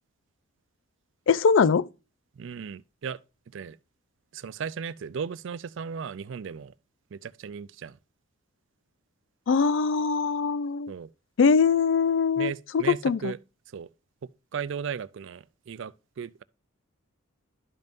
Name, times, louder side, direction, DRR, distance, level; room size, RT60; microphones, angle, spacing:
voice 1, 1.3-1.9 9.5-10.9 11.4-12.5 12.9-13.3, left 5 dB, 60° left, 0.3 m, -22 dB
voice 2, 2.4-3.2 3.5-3.8 4.3-6.7 7.1-8.0 10.9-11.1 12.4-13.4 13.7-13.9 14.5-16.4, right 6 dB, 60° right, 0.3 m, -36 dB
12.0 x 5.4 x 2.5 m
head